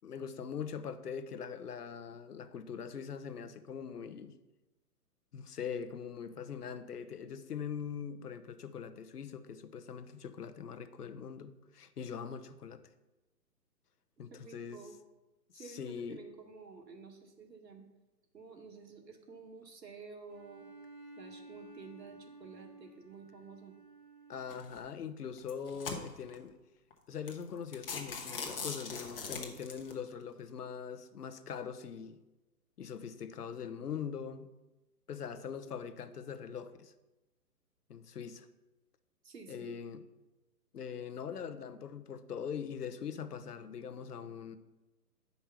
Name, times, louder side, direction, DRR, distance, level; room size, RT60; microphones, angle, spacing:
voice 1, 0.0-4.4 5.3-12.8 14.2-14.9 15.6-16.2 24.3-26.6 27.1-32.2 32.8-34.5 35.1-36.9 37.9-38.5 39.5-40.0 40.7-44.6, left 7 dB, 70° left, 10 dB, 0.9 m, -42 dB
voice 2, 14.3-15.0 15.5-17.9 18.3-20.7 21.2-23.7 39.2-39.8, right 4 dB, 85° right, 2 dB, 2.0 m, -51 dB
Bowed string instrument, 20.3-25.0, right 2 dB, 5° right, 0.9 m, -54 dB
sound 1, 24.5-24.8 25.4-26.4 26.9-27.0 27.3-27.4 27.7-29.9, left 5 dB, 35° left, 1.0 m, -40 dB
8.9 x 5.4 x 5.9 m, 1.1 s
hypercardioid pair, 170°, 49 cm